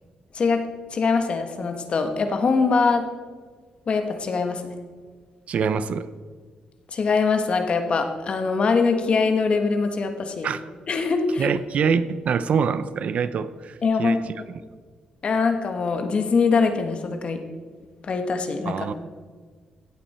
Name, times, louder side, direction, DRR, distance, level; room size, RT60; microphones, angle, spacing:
voice 1, 0.9-3.0 3.9-4.6 6.9-10.5 10.9-11.5 13.8-14.2 15.2-17.4 18.0-18.7, left 4 dB, 45° left, 6 dB, 1.4 m, -22 dB
voice 2, 5.5-6.1 10.4-10.6 11.4-14.6 18.6-18.9, right 6 dB, 60° right, 14 dB, 0.6 m, -25 dB
16.0 x 8.5 x 4.3 m, 1.5 s
cardioid pair, 120°, 3 cm